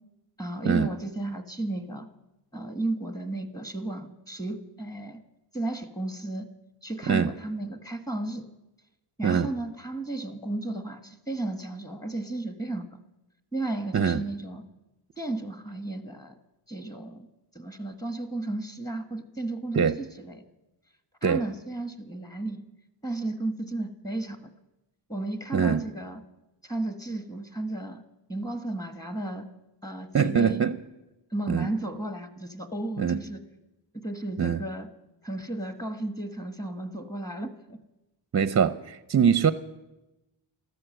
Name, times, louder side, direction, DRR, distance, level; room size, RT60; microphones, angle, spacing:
voice 1, 0.4-2.1 2.5-5.2 5.5-6.5 6.8-8.5 9.2-12.9 13.5-14.6 15.2-16.3 16.7-17.3 17.5-20.4 21.2-22.6 23.0-24.5 25.1-26.2 26.6-28.0 28.3-29.5 29.8-30.6 31.3-33.4 33.9-34.9 35.2-37.8, right 2 dB, 10° left, 1.3 m, -33 dB
voice 2, 25.5-25.9 30.1-30.8 31.5-31.7 33.0-33.3 34.4-34.6 38.3-39.5, right 7 dB, 35° right, 0.5 m, -23 dB
14.0 x 12.5 x 7.7 m
wide cardioid pair, 130°, 47 cm